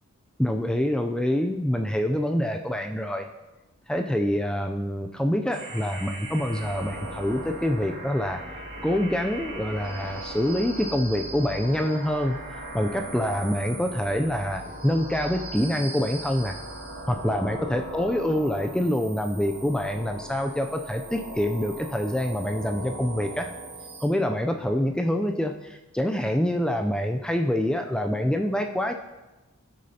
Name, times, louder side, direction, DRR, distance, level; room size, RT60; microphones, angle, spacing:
voice 1, 0.4-3.3 3.9-8.4 8.8-12.4 12.7-16.6 17.1-23.5 24.0-28.9, equal, 5° left, 4 dB, 0.3 m, -26 dB
sound 1, 5.5-24.1, right 1 dB, 45° right, 1.6 m, -38 dB
15.5 x 6.4 x 2.8 m, 1.1 s
head